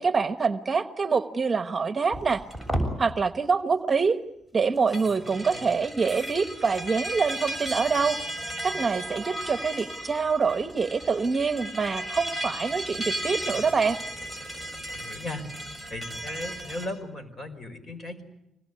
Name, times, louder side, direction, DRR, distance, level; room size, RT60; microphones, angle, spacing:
voice 1, 0.0-2.4 3.0-4.2 4.5-8.2 8.6-14.0, right 5 dB, 30° right, 11 dB, 1.2 m, -25 dB
sound 1, 2.1-2.9 4.8-16.9, right 1 dB, 15° left, 7.0 m, -34 dB
voice 2, 5.0-5.8 13.4-13.7 14.9-15.5 15.9-18.2, left 2 dB, 40° left, 9 dB, 5.1 m, -38 dB
26.0 x 20.0 x 9.8 m, 0.86 s
cardioid pair, 90°, 0 cm